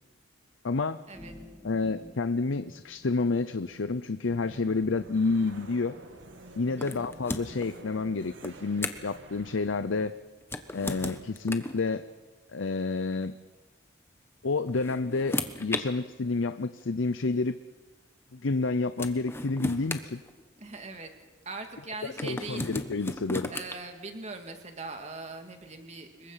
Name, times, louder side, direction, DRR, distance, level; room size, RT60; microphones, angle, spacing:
voice 1, 0.6-1.0 1.6-6.0 6.6-10.1 10.7-12.0 12.5-13.4 14.4-17.6 18.3-20.2 22.0-23.5, left 3 dB, 80° left, 12 dB, 0.7 m, -29 dB
sound 1, 1.1-4.0, equal, 10° right, 2.0 m, -50 dB
sound 2, 4.3-10.1, right 2 dB, 70° right, 2.1 m, -49 dB
sound 3, 6.8-7.7 8.4-9.2 10.4-11.8 13.1-13.2 14.4-15.8 16.8-16.9 18.5-18.6 19.0-20.8 22.2-23.7, left 2 dB, 10° left, 1.2 m, -35 dB
voice 2, 6.8-7.1 20.6-21.1 21.5-22.7 23.5-26.3, right 3 dB, 35° right, 5 dB, 2.3 m, -41 dB
26.5 x 22.5 x 5.8 m, 1.2 s
head